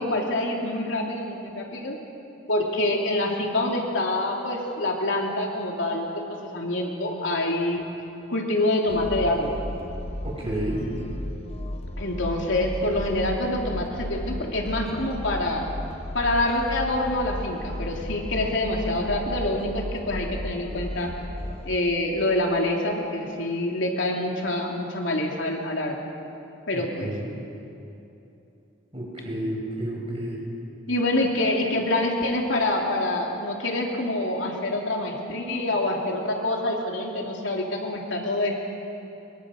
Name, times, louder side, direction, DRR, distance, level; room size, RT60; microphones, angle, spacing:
voice 1, 0.0-2.0 2.5-7.8 8.3-9.6 12.0-15.6 16.1-21.1 21.6-26.0 26.7-27.1 30.9-38.5, left 1 dB, 75° left, 0 dB, 3.1 m, -26 dB
sound 1, 8.9-21.8, left 1 dB, 30° left, 1.1 m, -34 dB
voice 2, 10.2-10.8 26.7-27.2 28.9-30.4, right 1 dB, 30° right, -3 dB, 6.8 m, -31 dB
23.5 x 22.5 x 6.6 m, 2.8 s
head